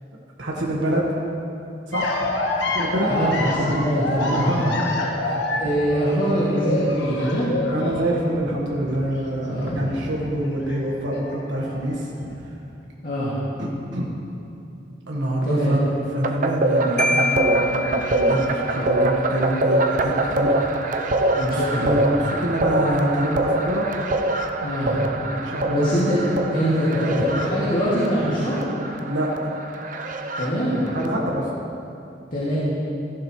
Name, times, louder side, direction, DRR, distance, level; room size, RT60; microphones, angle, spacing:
voice 1, 0.4-1.1 1.9-2.1 2.5-3.8 4.3-4.9 5.2-5.5 7.7-12.1 13.6-14.1 15.1-15.8 16.1-20.7 21.8-23.9 25.2-25.9 27.0-27.1 29.0-29.6 30.9-31.5, right 1 dB, 85° right, -3 dB, 1.4 m, -26 dB
sound 1, 1.9-10.8 11.1-12.3, left 2 dB, 80° left, 1.4 m, -27 dB
voice 2, 3.1-4.6 5.6-7.6 9.4-9.7 13.0-13.4 15.4-15.7 21.3-22.0 24.6-25.2 25.7-26.2 26.5-28.6 30.4-30.8 32.3-32.6, equal, 50° left, -10 dB, 2.3 m, -23 dB
sound 2, 16.2-31.1, right 2 dB, 45° right, 0.6 m, -24 dB
Marimba xylophone, 17.0-18.7, left 2 dB, 5° left, 0.4 m, -26 dB
15.0 x 11.0 x 3.2 m, 2.7 s
head